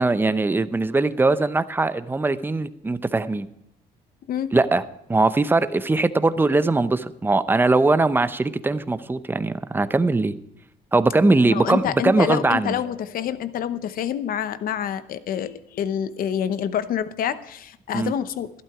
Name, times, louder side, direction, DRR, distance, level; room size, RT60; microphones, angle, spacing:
voice 1, 0.0-3.5 4.5-4.8 5.1-10.3 10.9-12.8 17.9-18.1, right 3 dB, 10° right, 13 dB, 0.6 m, -21 dB
voice 2, 11.4-18.5, left 9 dB, 60° left, 14 dB, 0.9 m, -27 dB
12.5 x 11.5 x 4.8 m, 0.81 s
cardioid pair, 110°, 17 cm